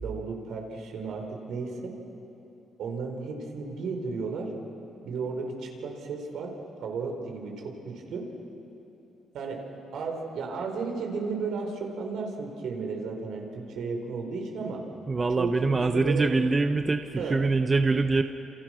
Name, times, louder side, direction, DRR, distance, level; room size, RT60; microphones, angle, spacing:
voice 1, 0.0-1.9 2.8-4.5 5.0-8.3 9.3-9.6 9.9-14.8 15.4-16.3 17.2-17.4, right 4 dB, 75° right, 2 dB, 4.6 m, -34 dB
voice 2, 15.1-18.2, right 3 dB, 25° right, 7 dB, 0.9 m, -24 dB
28.0 x 28.0 x 6.4 m, 3.0 s
cardioid pair, 90°, 0 cm